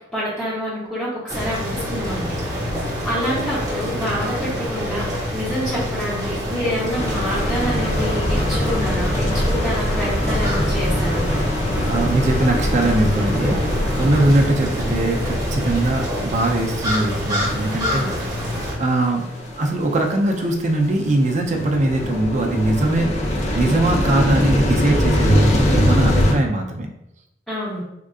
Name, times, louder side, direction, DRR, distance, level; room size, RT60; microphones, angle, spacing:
voice 1, 0.1-2.4 3.0-5.1 5.3-11.3 17.8-18.1 27.5-27.8, equal, 5° left, -11 dB, 0.9 m, -27 dB
sound 1, 1.3-18.8, equal, 20° right, 0.8 m, -27 dB
sound 2, 6.9-26.3, left 1 dB, 40° left, 0.6 m, -23 dB
voice 2, 11.8-18.0 18.8-19.3 19.6-23.1 23.5-26.9, right 2 dB, 40° right, 2 dB, 0.4 m, -21 dB
3.6 x 2.4 x 2.4 m, 0.85 s
head